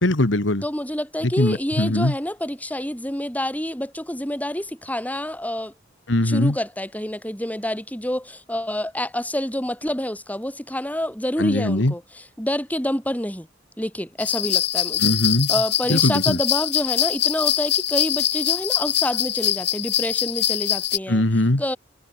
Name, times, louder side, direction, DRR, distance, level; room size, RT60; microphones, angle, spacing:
voice 1, 0.0-0.6 1.2-2.1 6.1-6.6 11.4-11.9 15.0-15.5 15.9-16.4 21.1-21.6, left 1 dB, 80° left, 2.0 m, -21 dB
voice 2, 0.6-5.7 6.2-12.0 12.4-13.5 13.8-15.1 15.5-21.2 21.6-21.8, left 1 dB, 10° left, 6.7 m, -27 dB
sound 1, 14.2-21.0, left 11 dB, 60° left, 2.6 m, -23 dB
head